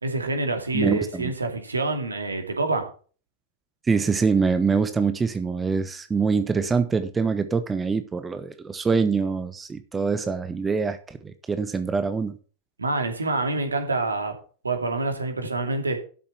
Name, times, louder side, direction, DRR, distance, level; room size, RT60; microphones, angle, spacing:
voice 1, 0.0-2.9 12.8-14.3 14.6-16.0, right 3 dB, 75° right, 6 dB, 2.6 m, -26 dB
voice 2, 0.7-1.3 3.9-12.4, right 5 dB, 15° right, 10 dB, 1.1 m, -24 dB
12.5 x 7.2 x 4.5 m, 0.38 s
figure-of-eight pair, 90°, 0 cm